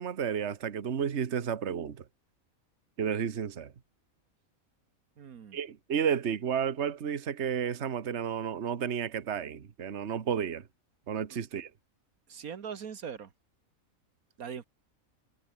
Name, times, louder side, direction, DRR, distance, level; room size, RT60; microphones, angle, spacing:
voice 1, 0.0-2.0 3.0-3.7 5.5-10.6 11.1-11.7, right 7 dB, 55° right, 1.5 m, -32 dB
voice 2, 5.2-5.6 12.3-13.3 14.4-14.6, right 7 dB, 80° right, 1.8 m, -41 dB
omnidirectional pair, 1.5 m